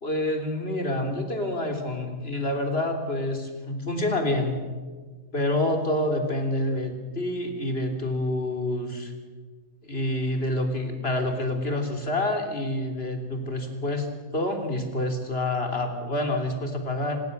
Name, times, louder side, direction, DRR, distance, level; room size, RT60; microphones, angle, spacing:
voice 1, 0.0-4.6 5.3-9.1 9.8-14.1 14.3-17.2, left 1 dB, 40° left, 4 dB, 3.7 m, -27 dB
26.0 x 20.5 x 6.7 m, 1.4 s
omnidirectional pair, 1.5 m